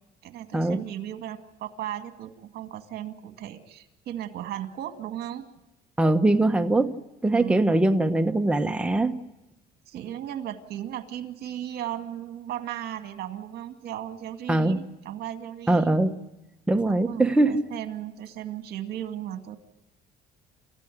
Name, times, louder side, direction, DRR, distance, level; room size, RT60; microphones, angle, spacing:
voice 1, 0.2-5.4 7.3-7.7 9.9-16.0 16.8-19.6, right 11 dB, 70° right, 8 dB, 2.2 m, -36 dB
voice 2, 6.0-6.9 7.2-9.1 14.5-14.8 15.7-16.2 16.7-17.6, right 2 dB, 5° right, 6 dB, 1.1 m, -22 dB
29.5 x 14.5 x 10.0 m, 0.99 s
cardioid pair, 110°, 17 cm